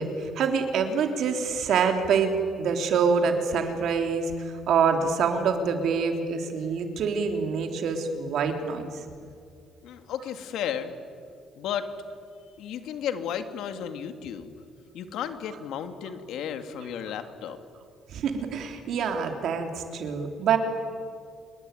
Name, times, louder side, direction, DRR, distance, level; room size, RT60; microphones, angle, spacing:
voice 1, 0.0-9.0 18.1-20.6, right 5 dB, 65° right, 5 dB, 3.5 m, -26 dB
voice 2, 9.8-10.9 11.6-11.9 12.6-14.6 14.9-17.6, left 8 dB, 75° left, 8 dB, 2.3 m, -33 dB
28.0 x 22.0 x 9.3 m, 2.3 s
cardioid pair, 130°, 0 cm